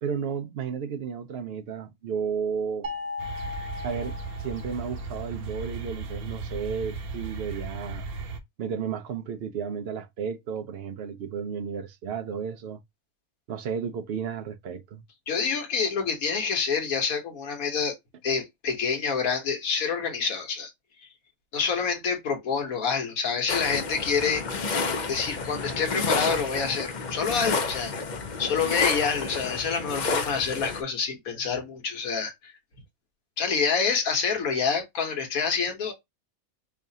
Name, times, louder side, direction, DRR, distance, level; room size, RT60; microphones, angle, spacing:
voice 1, 0.0-2.9 3.8-4.1 4.4-8.1 8.6-12.8 13.5-15.0, right 7 dB, 60° right, 0.6 m, -33 dB
sound 1, 2.8-5.1, left 3 dB, 30° right, 0.8 m, -37 dB
sound 2, 3.2-8.4, right 3 dB, 90° right, 1.3 m, -36 dB
voice 2, 15.3-17.9 18.2-20.7 21.5-24.4 24.7-27.9 28.4-32.5 33.4-35.9, left 5 dB, 80° left, 1.5 m, -27 dB
sound 3, 23.5-30.8, left 4 dB, 50° left, 0.5 m, -30 dB
4.8 x 2.4 x 2.7 m
omnidirectional pair, 1.5 m